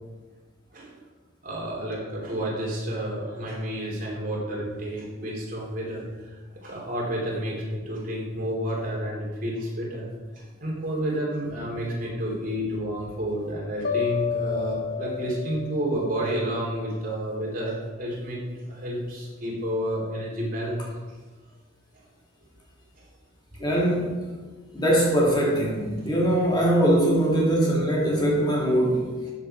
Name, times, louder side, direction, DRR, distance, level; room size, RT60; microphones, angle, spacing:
voice 1, 1.4-10.1 10.3-21.0 23.0-23.1 23.6-23.7 26.0-26.1, right 1 dB, 45° right, -3 dB, 3.3 m, -30 dB
sound 1, 13.8-16.9, left 7 dB, 50° left, 0.8 m, -31 dB
voice 2, 23.6-24.1 24.7-29.1, right 1 dB, 20° left, -3 dB, 2.1 m, -22 dB
13.5 x 7.3 x 4.4 m, 1.3 s
head